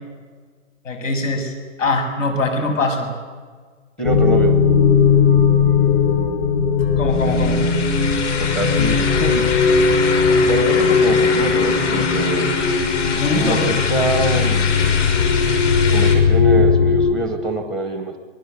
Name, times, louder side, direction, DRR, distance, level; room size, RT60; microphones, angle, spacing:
voice 1, 0.8-1.5 1.8-3.1 7.0-7.6 13.2-13.7, left 2 dB, 85° left, 5 dB, 7.6 m, -22 dB
sound 1, 4.0-17.1, left 5 dB, 55° left, 3.8 m, -17 dB
voice 2, 4.0-4.5 8.4-9.4 10.4-12.5 13.4-15.0 15.9-18.2, right 2 dB, ahead, 5 dB, 0.7 m, -24 dB
sound 2, 7.1-16.2, left 5 dB, 70° left, 5.9 m, -26 dB
26.5 x 20.5 x 8.2 m, 1.5 s
hypercardioid pair, 175°, 37 cm